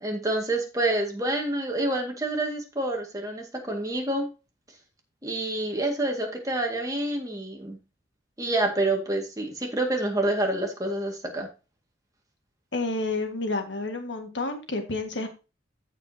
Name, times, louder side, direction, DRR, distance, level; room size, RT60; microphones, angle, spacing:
voice 1, 0.0-4.3 5.2-7.8 8.4-11.5, right 1 dB, 20° right, 2 dB, 2.0 m, -27 dB
voice 2, 12.7-15.3, left 2 dB, 75° left, 4 dB, 1.8 m, -30 dB
15.0 x 5.1 x 2.8 m, 0.31 s
head